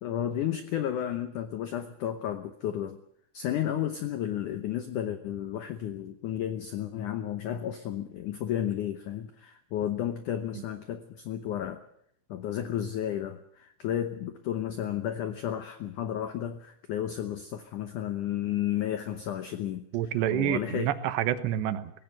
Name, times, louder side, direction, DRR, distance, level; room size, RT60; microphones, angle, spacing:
voice 1, 0.0-3.0 3.3-11.8 12.3-19.8 20.3-20.9, left 10 dB, 85° left, 10 dB, 1.8 m, -32 dB
voice 2, 19.9-21.9, right 12 dB, 85° right, 12 dB, 3.2 m, -28 dB
18.0 x 16.0 x 9.3 m, 0.69 s
omnidirectional pair, 5.0 m